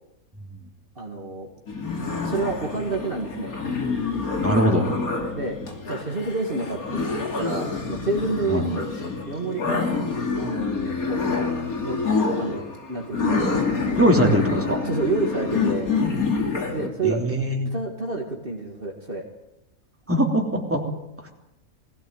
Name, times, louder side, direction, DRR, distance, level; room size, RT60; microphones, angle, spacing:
voice 1, 1.0-1.5 2.2-3.6 5.3-5.6 5.9-7.1 7.3-8.9 9.3-10.0 10.4-11.5 11.8-12.0 12.4-13.4 13.8-14.1 14.7-15.9 16.7-17.4 17.7-19.2, right 3 dB, 40° right, 1 dB, 2.4 m, -29 dB
sound 1, 1.7-16.9, left 4 dB, 80° left, 3.2 m, -27 dB
voice 2, 4.4-4.9 8.5-8.6 14.0-14.8 17.0-17.7 20.1-20.8, equal, 10° right, 1 dB, 3.2 m, -21 dB
21.5 x 16.5 x 9.3 m, 0.86 s
omnidirectional pair, 1.5 m